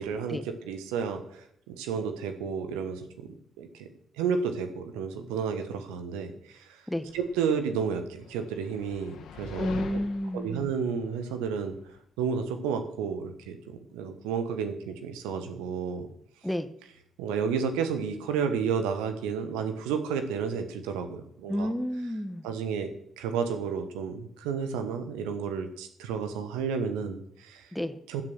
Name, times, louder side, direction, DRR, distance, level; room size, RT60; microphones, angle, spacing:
voice 1, 0.0-3.3 3.6-3.9 4.2-6.8 7.1-9.7 10.3-11.8 12.2-16.1 17.2-21.7 22.4-27.7 28.1-28.2, right 6 dB, 70° right, 8 dB, 1.3 m, -31 dB
sound 1, 7.1-12.0, left 7 dB, 65° left, 2.5 m, -44 dB
voice 2, 9.6-10.7 16.4-16.7 21.5-22.4 27.7-28.0, left 1 dB, 5° left, 11 dB, 1.3 m, -30 dB
15.0 x 8.0 x 6.2 m, 0.67 s
figure-of-eight pair, 40°, 0 cm